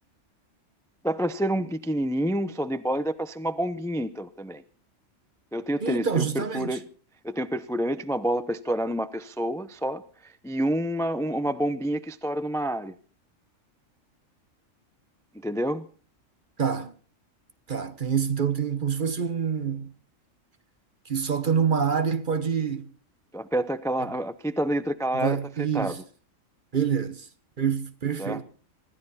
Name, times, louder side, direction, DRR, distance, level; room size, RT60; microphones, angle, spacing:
voice 1, 1.0-4.6 5.5-6.8 7.2-12.9 15.3-15.9 23.3-26.0 28.2-28.4, right 1 dB, 5° left, 0.5 m, -28 dB
voice 2, 5.8-6.8 16.6-16.9 17.7-19.9 21.1-22.9 25.1-26.0 26.7-27.3 27.6-28.4, right 7 dB, 40° right, 1.1 m, -26 dB
25.0 x 13.5 x 4.2 m
omnidirectional pair, 1.4 m